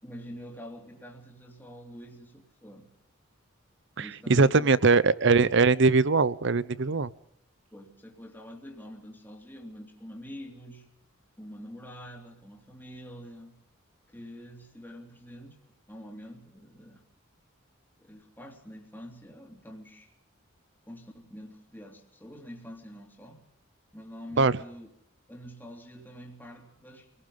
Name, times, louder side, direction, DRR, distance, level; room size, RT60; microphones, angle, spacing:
voice 1, 0.0-2.9 4.0-4.7 7.7-10.9 11.4-13.6 14.1-15.6 15.9-17.0 18.0-20.1 20.9-23.5 23.9-24.9 25.3-27.1, equal, 10° left, 1 dB, 3.1 m, -46 dB
voice 2, 4.0-7.1 24.4-24.5, right 4 dB, 60° right, 18 dB, 0.8 m, -21 dB
27.0 x 18.0 x 5.5 m, 0.76 s
head